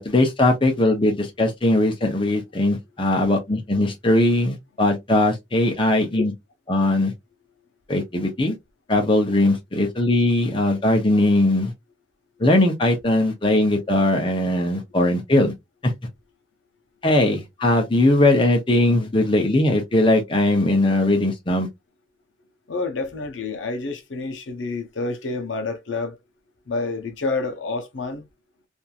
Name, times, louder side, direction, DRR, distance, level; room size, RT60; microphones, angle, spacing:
voice 1, 0.0-6.3 6.7-7.1 7.9-8.5 8.9-11.7 12.4-15.5 15.8-15.9 17.0-21.7, left 1 dB, 25° left, 0.7 m, -20 dB
voice 2, 22.7-26.2 26.7-28.2, left 3 dB, 70° left, 0.7 m, -28 dB
2.9 x 2.6 x 2.4 m
head